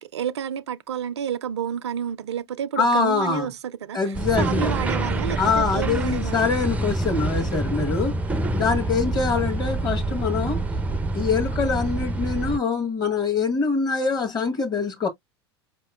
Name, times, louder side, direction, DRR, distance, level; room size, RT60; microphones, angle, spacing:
voice 1, 0.0-4.0 4.4-6.5, right 8 dB, 75° right, 0.4 m, -30 dB
voice 2, 2.8-3.5 3.9-4.7 5.4-8.2 8.5-10.6 11.1-15.1, left 4 dB, 30° left, 1.3 m, -24 dB
sound 1, 4.1-12.6, right 2 dB, 10° right, 0.4 m, -26 dB
4.7 x 2.9 x 2.3 m
hypercardioid pair, 85°, 14 cm